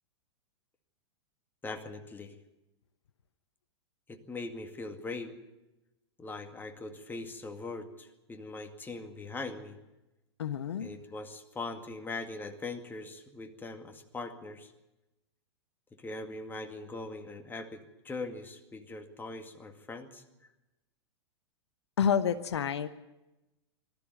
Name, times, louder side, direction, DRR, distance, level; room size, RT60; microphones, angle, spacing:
voice 1, 1.6-2.4 4.1-5.4 6.2-9.8 10.8-14.7 15.9-20.2, left 3 dB, 15° left, 5 dB, 2.1 m, -41 dB
voice 2, 10.4-10.9 22.0-22.9, left 8 dB, 75° left, 11 dB, 1.0 m, -28 dB
19.5 x 13.5 x 9.8 m, 1.0 s
hypercardioid pair, 100°, 14 cm